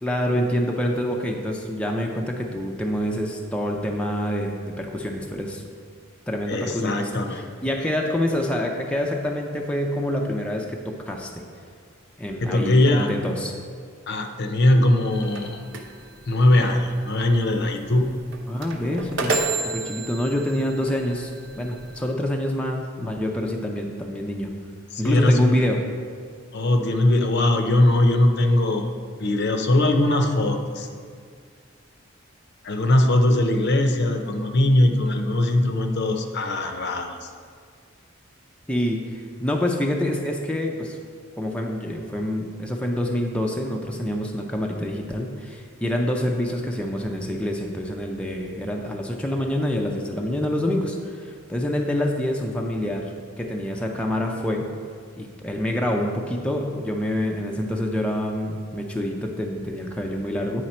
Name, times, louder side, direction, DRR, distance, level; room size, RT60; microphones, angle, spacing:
voice 1, 0.0-5.7 6.3-11.4 12.2-13.5 18.5-19.4 19.6-21.3 21.6-24.5 25.0-25.8 38.7-41.0 41.4-53.1 53.4-54.7 55.2-60.6, left 1 dB, 5° left, 0 dB, 0.5 m, -26 dB
voice 2, 6.5-7.4 12.4-13.1 14.1-15.6 16.3-18.2 24.9-25.6 26.5-28.9 29.2-30.9 32.6-37.3, left 1 dB, 55° left, 5 dB, 0.6 m, -20 dB
sound 1, 15.1-22.1, right 3 dB, 65° right, 0.7 m, -32 dB
9.2 x 4.9 x 4.3 m, 2.1 s
head